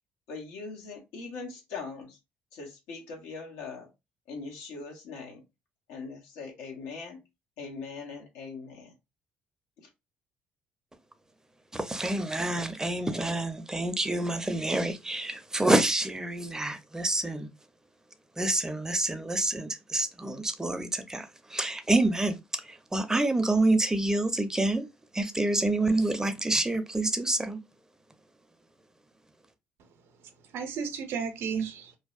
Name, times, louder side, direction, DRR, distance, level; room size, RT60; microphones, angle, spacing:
voice 1, 0.3-2.2 2.5-3.9 4.3-5.4 5.9-7.2 7.6-8.9 9.8-9.9, left 4 dB, 80° left, 0.8 m, -41 dB
voice 2, 11.7-17.5 18.4-24.9 25.1-27.6, right 2 dB, 15° right, 0.5 m, -27 dB
voice 3, 29.8-32.0, right 6 dB, 70° right, 0.5 m, -35 dB
2.7 x 2.0 x 2.3 m
supercardioid pair, 60°, 4 cm